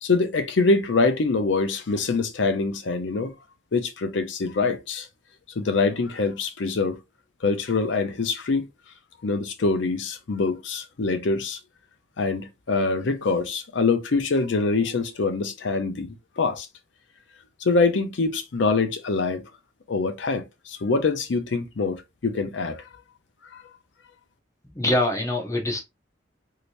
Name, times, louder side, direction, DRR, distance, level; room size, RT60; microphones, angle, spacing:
voice 1, 0.0-3.3 3.7-5.1 5.6-7.0 7.4-8.7 9.2-11.6 12.2-16.7 17.6-19.4 19.9-22.9 23.5-23.6, left 3 dB, 70° left, 0.6 m, -24 dB
voice 2, 24.7-25.8, left 1 dB, 20° left, 0.8 m, -24 dB
3.2 x 2.8 x 2.5 m
head